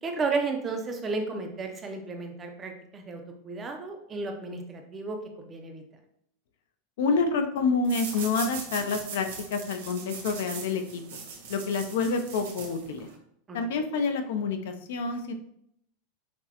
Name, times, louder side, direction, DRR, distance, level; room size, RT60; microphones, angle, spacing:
voice 1, 0.0-5.8 13.5-13.6, right 3 dB, 15° right, 5 dB, 0.4 m, -33 dB
voice 2, 7.0-11.0 11.5-13.1 13.5-15.3, left 4 dB, 70° left, 7 dB, 0.5 m, -28 dB
sound 1, 7.8-13.2, right 5 dB, 80° right, 1.2 m, -40 dB
5.8 x 2.1 x 2.9 m, 0.72 s
supercardioid pair, 170°, 0 cm